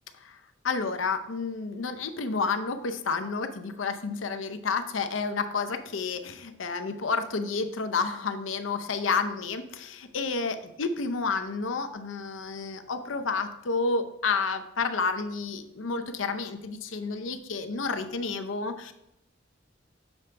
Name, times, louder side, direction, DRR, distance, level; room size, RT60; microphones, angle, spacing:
voice 1, 0.6-18.9, left 4 dB, 90° left, 9 dB, 0.6 m, -30 dB
7.2 x 3.3 x 5.0 m, 0.82 s
head